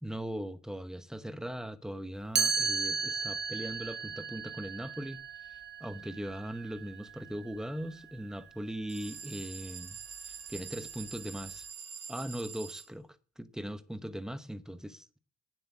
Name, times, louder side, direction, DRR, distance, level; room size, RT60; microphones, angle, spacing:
voice 1, 0.0-5.2 5.8-10.0 10.3-11.6 12.1-13.1 13.4-15.2, equal, ahead, 1.0 m, -39 dB
Chime, 2.4-8.2, right 5 dB, 35° right, 0.9 m, -35 dB
sound 1, 8.9-12.9, right 6 dB, 50° right, 2.3 m, -45 dB
9.4 x 7.6 x 8.2 m
cardioid pair, 90°, 30 cm